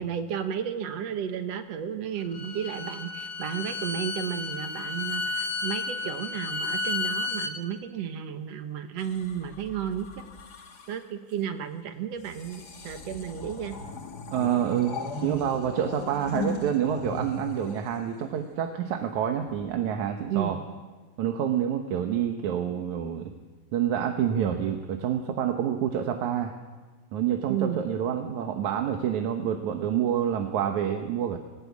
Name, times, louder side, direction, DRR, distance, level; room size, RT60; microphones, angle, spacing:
voice 1, 0.0-10.2 10.9-13.7 20.3-20.6 27.5-27.9, right 8 dB, 65° right, 8 dB, 2.4 m, -33 dB
Bowed string instrument, 2.2-7.5, left 3 dB, 60° left, 0.7 m, -32 dB
sound 1, 9.0-11.1 12.2-18.6 19.5-19.8, left 2 dB, 40° left, 1.8 m, -38 dB
voice 2, 14.3-20.6 21.2-23.3 23.7-26.5 27.1-31.4, right 9 dB, 80° right, 5 dB, 2.6 m, -27 dB
20.5 x 18.5 x 8.5 m, 1.3 s
omnidirectional pair, 3.3 m